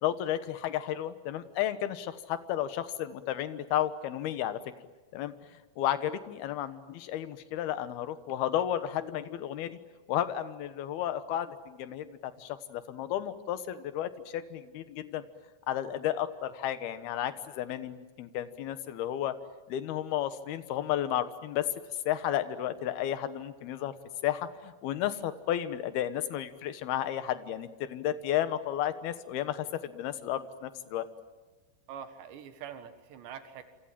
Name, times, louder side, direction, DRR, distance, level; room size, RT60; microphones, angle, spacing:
voice 1, 0.0-4.6 5.1-9.8 10.1-15.2 15.7-19.4 19.7-21.7 22.1-23.9 24.2-31.1, left 11 dB, 70° left, 12 dB, 2.9 m, -33 dB
voice 2, 31.9-33.6, right 8 dB, 75° right, 9 dB, 3.9 m, -44 dB
28.5 x 26.5 x 7.6 m, 1.3 s
omnidirectional pair, 5.2 m